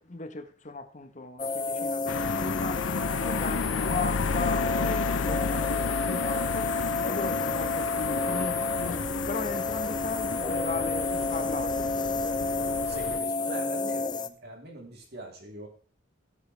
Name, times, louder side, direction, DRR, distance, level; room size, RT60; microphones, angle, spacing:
voice 1, 0.0-2.8 3.2-6.7 7.0-9.0 9.3-11.9, left 3 dB, 35° left, 7 dB, 1.1 m, -37 dB
sound 1, 1.4-14.3, left 3 dB, 20° left, 0.6 m, -30 dB
sound 2, 2.1-13.2, left 5 dB, 75° left, 0.6 m, -32 dB
voice 2, 12.9-15.7, right 2 dB, 50° right, 0 dB, 3.3 m, -42 dB
17.0 x 8.2 x 3.3 m, 0.38 s
head